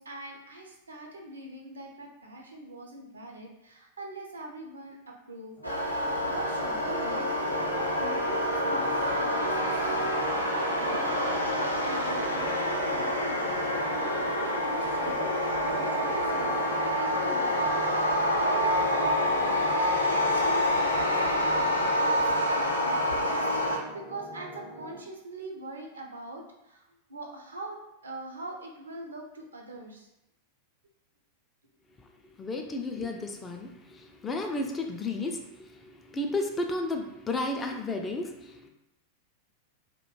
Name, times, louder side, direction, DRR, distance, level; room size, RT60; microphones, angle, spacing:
voice 1, 0.0-5.6 6.2-16.5 17.0-18.8 20.0-30.1, right 2 dB, 75° right, 1 dB, 0.4 m, -42 dB
sound 1, 5.6-23.8, equal, 90° left, 0.4 m, -27 dB
sound 2, 5.6-25.0, equal, 35° left, 0.7 m, -45 dB
voice 2, 32.4-38.7, left 2 dB, 20° left, 3 dB, 0.3 m, -33 dB
2.4 x 2.1 x 2.8 m, 0.87 s
figure-of-eight pair, 90°, 0 cm